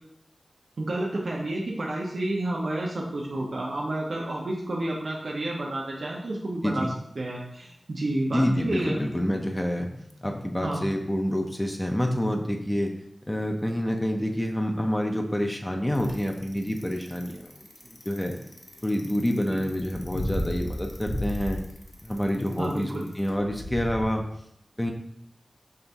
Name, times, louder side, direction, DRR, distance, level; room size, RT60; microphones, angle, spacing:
voice 1, 0.8-9.0 10.6-10.9 19.5-19.6 22.6-23.1, right 1 dB, 80° right, -3 dB, 0.6 m, -30 dB
voice 2, 8.3-12.9 13.3-17.5 18.1-18.4 18.8-21.6 22.0-24.2 24.8-24.9, equal, 15° left, 2 dB, 0.5 m, -27 dB
Bicycle, 15.9-24.0, left 1 dB, 45° left, 0.8 m, -34 dB
5.5 x 2.6 x 3.4 m, 0.73 s
wide cardioid pair, 75°, 0 cm